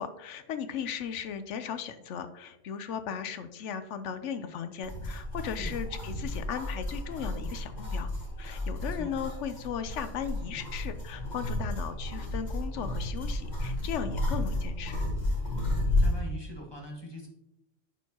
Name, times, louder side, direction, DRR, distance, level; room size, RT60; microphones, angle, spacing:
voice 1, 0.0-8.1 8.4-15.0, left 8 dB, 75° left, 10 dB, 0.9 m, -37 dB
sound 1, 4.8-16.2, left 1 dB, 35° left, 1.7 m, -32 dB
voice 2, 8.8-9.1 16.0-17.3, left 1 dB, 20° left, -1 dB, 1.4 m, -42 dB
10.0 x 4.5 x 2.8 m, 0.91 s
omnidirectional pair, 1.3 m